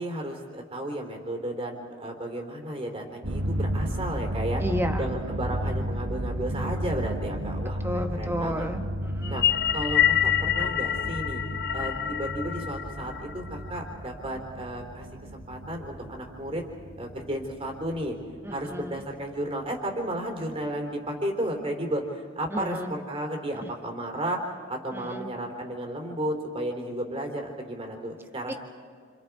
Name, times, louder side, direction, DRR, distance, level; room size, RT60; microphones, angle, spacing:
voice 1, 0.0-4.6 5.0-8.6 9.3-9.4 9.7-11.4 11.7-15.1 15.3-16.6 17.0-18.2 18.5-28.5, right 1 dB, 25° right, 3 dB, 3.3 m, -33 dB
sound 1, 3.2-19.3, equal, 80° right, 1.6 m, -33 dB
voice 2, 4.6-5.0 5.7-5.8 7.8-9.4 18.4-19.0 22.5-22.9 24.9-25.3 28.5-28.6, equal, 10° right, 5 dB, 1.4 m, -32 dB
sound 2, 9.2-13.8, left 10 dB, 50° left, 0.6 m, -27 dB
29.0 x 27.0 x 4.7 m, 2.1 s
head